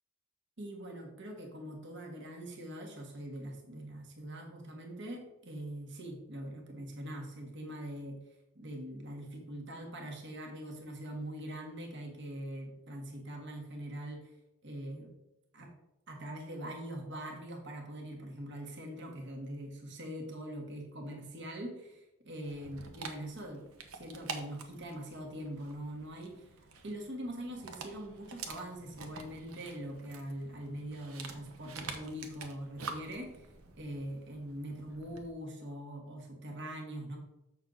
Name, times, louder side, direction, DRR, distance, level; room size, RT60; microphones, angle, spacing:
voice 1, 0.6-14.3 14.6-15.1 15.5-15.7 16.1-23.7 23.9-37.2, right 1 dB, 55° right, 2 dB, 1.4 m, -43 dB
Dog, 22.4-35.3, right 4 dB, 75° right, 1.1 m, -48 dB
7.5 x 6.3 x 3.9 m, 0.90 s
head